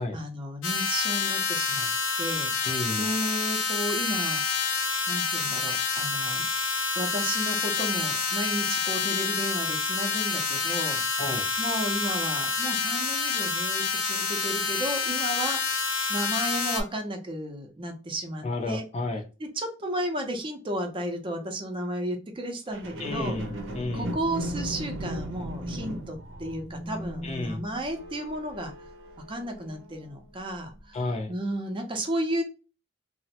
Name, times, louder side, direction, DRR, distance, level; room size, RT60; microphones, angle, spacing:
voice 1, 0.0-1.9 2.2-4.4 5.1-6.4 7.0-11.0 11.6-15.6 16.1-18.8 19.4-23.4 23.9-28.7 29.3-31.0 31.3-32.4, right 1 dB, 25° right, 4 dB, 0.5 m, -33 dB
sound 1, 0.6-16.8, left 5 dB, 85° left, 0.7 m, -28 dB
voice 2, 2.6-3.1 11.2-11.5 18.4-19.2 23.0-24.1 27.2-27.6 30.9-31.3, left 2 dB, 35° left, 5 dB, 0.4 m, -32 dB
sound 2, 22.7-30.2 30.7-30.8, right 1 dB, 80° right, 0.6 m, -37 dB
3.0 x 2.0 x 2.8 m, 0.32 s
head